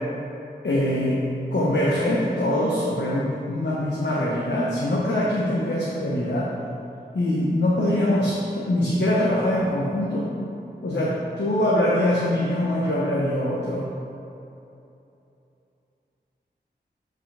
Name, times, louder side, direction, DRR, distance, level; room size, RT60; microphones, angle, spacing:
voice 1, 0.6-1.2 1.5-6.5 7.1-10.3 10.8-13.9, left 1 dB, 80° left, -5 dB, 1.0 m, -23 dB
7.7 x 5.6 x 3.4 m, 2.8 s
wide cardioid pair, 60°, 18 cm